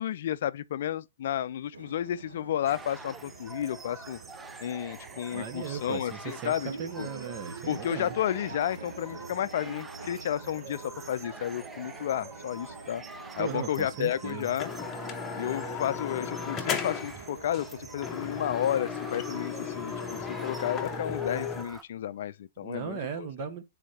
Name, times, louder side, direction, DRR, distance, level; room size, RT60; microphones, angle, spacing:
voice 1, 0.0-4.2 4.6-6.7 7.0-7.1 7.7-13.0 13.4-14.7 15.4-19.9 20.3-23.3, left 10 dB, 60° left, 0.4 m, -32 dB
Bus, 1.7-21.0, right 4 dB, 85° right, 1.0 m, -46 dB
sound 1, 2.7-21.8, right 3 dB, 10° right, 0.5 m, -46 dB
voice 2, 5.3-8.2 13.4-14.5 22.6-23.6, right 7 dB, 40° right, 1.4 m, -37 dB
sound 2, 14.1-14.2 14.6-17.2 17.5-17.7 18.0-21.6, left 7 dB, 20° left, 1.0 m, -35 dB
6.3 x 4.2 x 4.3 m
hypercardioid pair, 125°, 0 cm